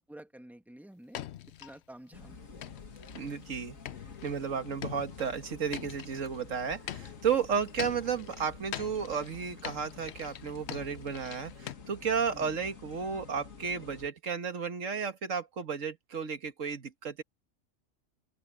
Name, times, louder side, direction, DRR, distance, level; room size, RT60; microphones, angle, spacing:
voice 1, 0.1-1.2 1.6-2.6 12.3-12.5, right 1 dB, ahead, 1.5 m, -50 dB
sound 1, 1.1-1.8 2.6-3.4 3.9-6.4 6.9-11.7, left 11 dB, 65° left, 0.8 m, -43 dB
sound 2, 2.1-14.1, left 5 dB, 90° left, 2.4 m, -49 dB
voice 2, 3.2-3.8 4.2-17.2, right 6 dB, 75° right, 1.9 m, -33 dB
open air
omnidirectional pair, 1.3 m